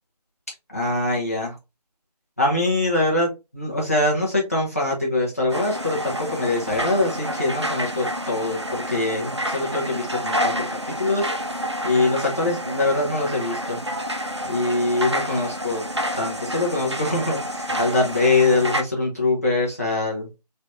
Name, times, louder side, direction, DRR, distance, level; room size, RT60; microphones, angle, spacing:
voice 1, 0.7-1.5 2.4-10.6 11.0-11.3 11.8-13.8 14.5-15.8 16.2-20.4, left 2 dB, 20° left, -4 dB, 0.8 m, -23 dB
sound 1, 5.5-18.8, equal, 45° right, 0.4 m, -29 dB
3.2 x 3.2 x 2.5 m, 0.25 s
figure-of-eight pair, 180°, 21 cm